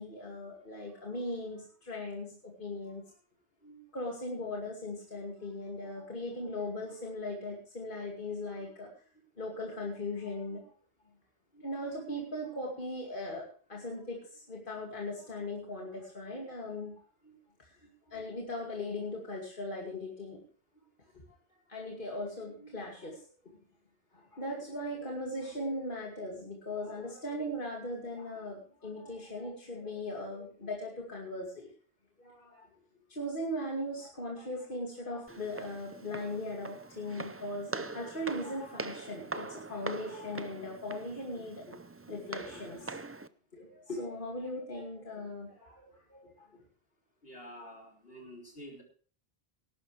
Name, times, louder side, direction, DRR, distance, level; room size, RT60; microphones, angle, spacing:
voice 1, 0.0-3.0 3.6-8.9 9.4-10.7 11.5-17.7 18.1-20.4 21.7-23.6 24.1-31.7 32.2-32.7 33.1-41.8 42.1-43.0 43.5-46.5, left 1 dB, 55° left, -1 dB, 2.6 m, -39 dB
Walk footsteps, 35.3-43.3, right 3 dB, 20° right, 0.4 m, -43 dB
voice 2, 47.2-48.8, equal, 70° left, 0 dB, 3.8 m, -48 dB
18.5 x 11.5 x 3.3 m, 0.43 s
omnidirectional pair, 1.0 m